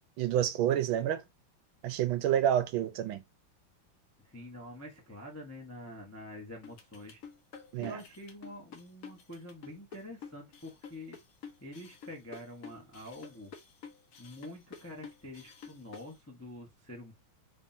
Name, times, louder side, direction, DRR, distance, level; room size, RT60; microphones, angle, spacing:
voice 1, 0.2-1.2 1.8-3.2 7.7-8.0, right 10 dB, 75° right, 1.3 m, -28 dB
voice 2, 4.2-7.2 7.8-11.2 11.6-13.5 14.2-17.1, left 1 dB, 15° left, 0.5 m, -46 dB
sound 1, 6.6-16.1, left 6 dB, 60° left, 0.9 m, -49 dB
3.6 x 3.4 x 2.6 m
omnidirectional pair, 2.4 m